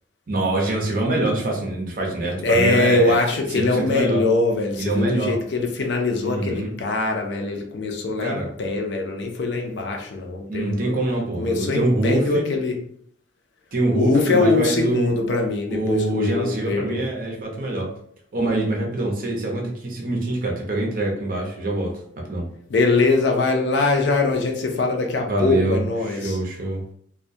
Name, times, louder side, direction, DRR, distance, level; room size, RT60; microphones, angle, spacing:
voice 1, 0.3-3.2 3.5-4.2 4.8-5.3 6.2-6.7 8.2-8.5 10.5-12.5 13.7-15.1 15.7-17.9 18.3-21.9 22.3-22.4 25.2-26.8, right 2 dB, 45° right, 0 dB, 0.6 m, -24 dB
voice 2, 2.4-10.9 11.4-12.8 13.9-17.1 22.7-26.4, left 3 dB, 65° left, 2 dB, 0.4 m, -22 dB
2.2 x 2.1 x 2.6 m, 0.65 s
head